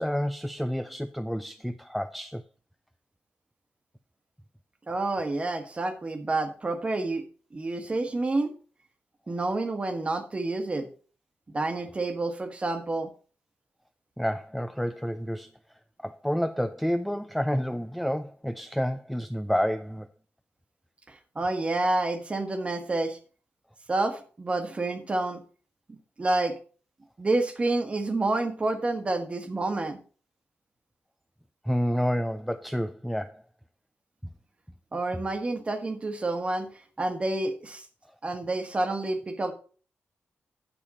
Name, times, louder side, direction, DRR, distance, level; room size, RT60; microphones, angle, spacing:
voice 1, 0.0-2.4 14.2-15.5 16.0-20.1 31.6-33.4, equal, ahead, 0.4 m, -29 dB
voice 2, 4.9-7.2 7.5-8.5 9.3-10.9 11.5-13.1 21.1-23.2 23.9-25.4 25.9-26.5 27.2-30.0 34.9-36.7 37.0-37.8 38.2-39.5, right 2 dB, 25° right, 1.3 m, -29 dB
9.8 x 6.9 x 4.1 m
wide cardioid pair, 145°, 5 cm